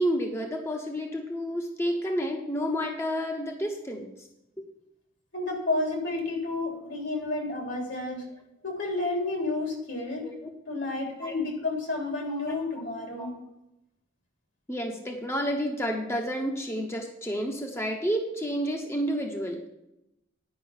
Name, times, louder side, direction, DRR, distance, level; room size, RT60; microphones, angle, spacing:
voice 1, 0.0-4.3 10.2-10.5 11.2-11.3 12.3-12.6 13.2-13.3 14.7-19.7, equal, 15° left, 2 dB, 1.0 m, -30 dB
voice 2, 5.3-8.2 8.6-10.3 10.7-13.3, left 2 dB, 70° left, 1 dB, 3.4 m, -31 dB
10.5 x 5.5 x 7.1 m, 0.89 s
head